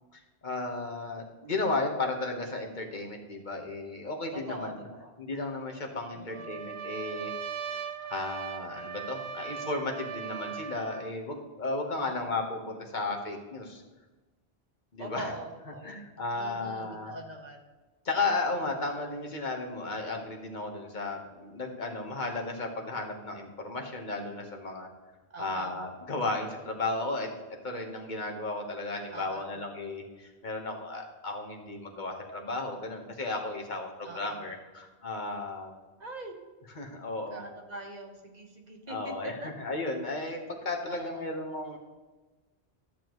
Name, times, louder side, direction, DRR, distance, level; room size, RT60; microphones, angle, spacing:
voice 1, 0.1-4.9 5.2-7.3 8.1-13.8 14.9-15.3 15.8-17.1 18.0-24.9 25.4-27.3 27.6-35.8 36.7-37.4 38.9-41.8, left 2 dB, 45° left, 2 dB, 1.4 m, -34 dB
voice 2, 4.3-5.1 6.1-6.5 12.0-12.3 15.0-16.0 16.4-17.6 25.3-25.8 29.1-29.5 34.0-34.4 36.0-36.4 37.3-39.5 40.9-41.3, right 2 dB, 40° right, 2 dB, 1.3 m, -42 dB
Trumpet, 6.3-11.1, right 7 dB, 90° right, 1.0 m, -39 dB
13.5 x 6.9 x 3.1 m, 1.2 s
omnidirectional pair, 1.1 m